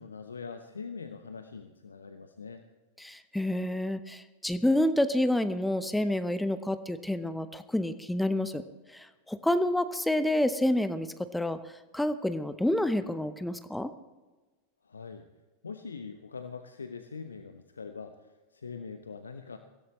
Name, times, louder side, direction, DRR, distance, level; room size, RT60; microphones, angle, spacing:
voice 1, 0.0-2.6 14.8-15.3 15.6-19.6, left 5 dB, 75° left, 7 dB, 0.9 m, -43 dB
voice 2, 3.0-8.6 8.9-11.1 11.3-13.9, left 1 dB, 5° left, 11 dB, 0.8 m, -28 dB
23.5 x 17.0 x 3.1 m, 1.2 s
figure-of-eight pair, 90°, 0 cm